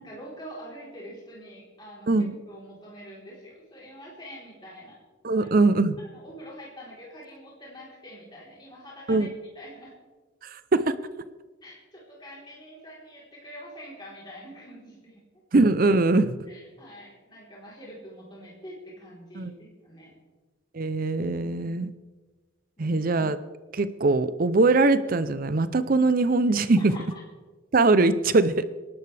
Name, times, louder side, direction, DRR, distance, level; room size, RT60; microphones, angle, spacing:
voice 1, 0.0-5.0 5.3-5.5 6.1-9.3 9.5-9.9 11.6-15.2 16.5-20.1 22.8-22.9 26.7-27.2, equal, 20° left, -5 dB, 3.7 m, -45 dB
voice 2, 5.2-6.0 9.1-9.3 10.4-10.9 15.5-16.4 19.4-19.5 20.7-21.9 22.8-23.4 23.7-26.9 27.7-28.6, right 3 dB, 45° right, 13 dB, 0.6 m, -22 dB
26.5 x 11.5 x 3.4 m, 1.3 s
head